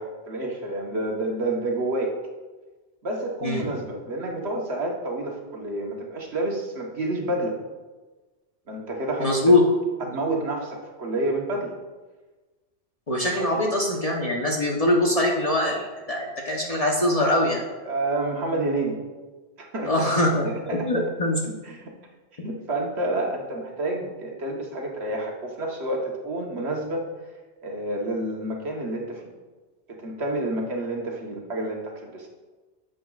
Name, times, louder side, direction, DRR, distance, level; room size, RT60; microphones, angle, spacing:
voice 1, 0.0-2.1 3.0-7.6 8.7-9.5 10.0-11.7 13.4-13.5 17.8-19.0 19.6-20.9 21.6-21.9 22.4-27.0 27.6-29.3 30.0-32.3, right 2 dB, 70° right, 0 dB, 1.4 m, -29 dB
voice 2, 9.2-9.6 13.1-17.6 19.8-21.4, left 1 dB, 35° left, -2 dB, 0.9 m, -22 dB
9.8 x 7.7 x 2.4 m, 1.2 s
omnidirectional pair, 1.2 m